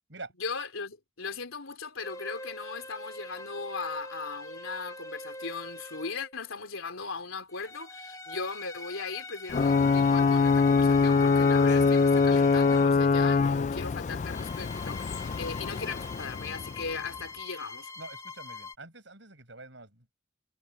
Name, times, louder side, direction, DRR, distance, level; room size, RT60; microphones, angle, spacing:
voice 1, 0.4-17.9, left 4 dB, 85° left, 3.4 m, -38 dB
sound 1, 2.0-6.4 7.5-13.0 14.2-18.7, left 2 dB, 15° left, 1.1 m, -43 dB
Ocean / Boat Water vehicle / Alarm, 9.5-17.1, left 4 dB, 35° left, 0.3 m, -24 dB
voice 2, 18.0-20.1, right 3 dB, 60° right, 8.0 m, -46 dB
head